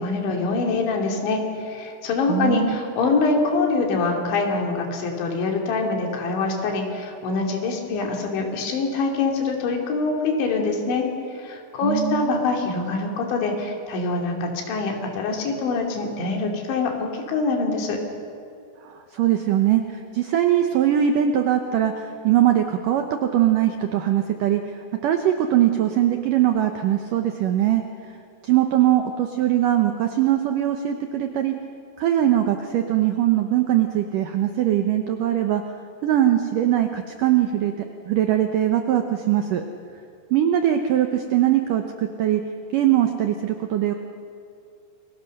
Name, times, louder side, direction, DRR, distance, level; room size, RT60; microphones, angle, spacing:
voice 1, 0.0-11.1 11.3-18.0, left 3 dB, 80° left, 2 dB, 5.1 m, -24 dB
voice 2, 2.3-2.8 11.8-12.3 18.8-27.8 28.4-31.6 32.0-35.6 36.0-37.7 38.1-39.6 40.3-42.4 42.7-43.9, right 11 dB, 80° right, 6 dB, 1.9 m, -21 dB
29.0 x 22.5 x 6.6 m, 2.4 s
omnidirectional pair, 5.2 m